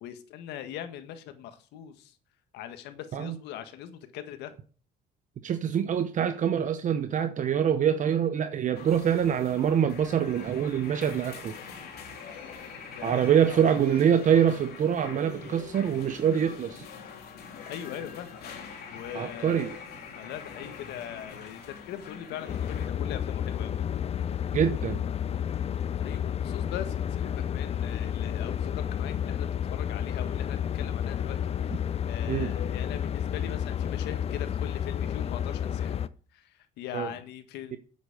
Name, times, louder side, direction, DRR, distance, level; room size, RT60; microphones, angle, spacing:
voice 1, 0.0-2.1 2.5-4.5 11.8-11.9 12.9-13.8 15.0-15.2 17.7-18.4 18.9-19.7 20.2-23.8 26.0-31.8 32.1-36.0 36.3-37.8, left 10 dB, 85° left, 10 dB, 1.6 m, -41 dB
voice 2, 5.4-11.6 13.0-16.9 19.1-19.8 24.5-25.0 32.3-32.5 36.9-37.1, right 8 dB, 50° right, 9 dB, 0.9 m, -25 dB
sound 1, 8.7-22.9, left 6 dB, 65° left, 3.2 m, -44 dB
sound 2, 22.5-36.1, left 9 dB, 35° left, 0.6 m, -31 dB
8.3 x 8.0 x 6.6 m, 0.41 s
cardioid pair, 110°, 17 cm